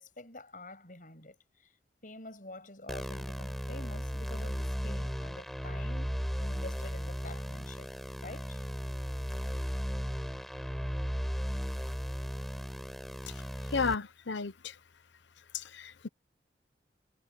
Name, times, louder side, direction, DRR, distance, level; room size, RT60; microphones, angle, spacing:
voice 1, 0.0-1.7 2.0-7.9 8.2-8.6, left 2 dB, 45° left, 7.9 m, -48 dB
sound 1, 2.9-13.9, equal, ahead, 4.6 m, -36 dB
voice 2, 13.7-14.7 15.5-16.1, left 4 dB, 85° left, 0.9 m, -33 dB
head